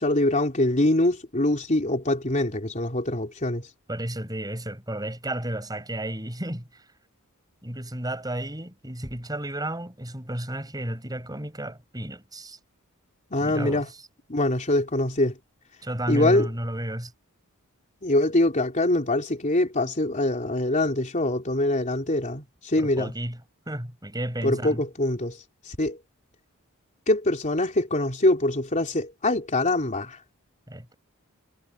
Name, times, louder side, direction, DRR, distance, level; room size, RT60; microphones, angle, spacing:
voice 1, 0.0-3.7 13.3-13.9 14.3-15.4 16.1-16.5 18.0-23.1 24.4-25.4 25.7-26.0 27.1-30.2, left 1 dB, 35° left, 3.7 m, -24 dB
voice 2, 3.9-6.8 7.6-12.6 13.4-13.8 15.8-17.1 22.8-23.4 23.7-24.8 30.7-30.9, right 1 dB, 15° right, 6.8 m, -32 dB
head